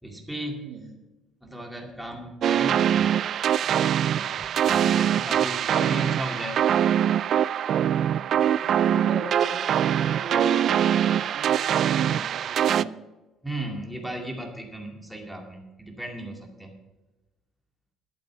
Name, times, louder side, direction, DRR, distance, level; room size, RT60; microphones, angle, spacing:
voice 1, 0.0-0.6 1.4-3.2 3.6-3.7 4.1-6.6 13.4-16.8, right 1 dB, ahead, 2 dB, 2.3 m, -36 dB
sound 1, 2.4-12.8, right 9 dB, 50° right, 0.3 m, -23 dB
voice 2, 8.6-12.9, right 4 dB, 70° right, -1 dB, 2.4 m, -37 dB
12.0 x 8.6 x 6.0 m, 1.1 s
cardioid pair, 145°, 0 cm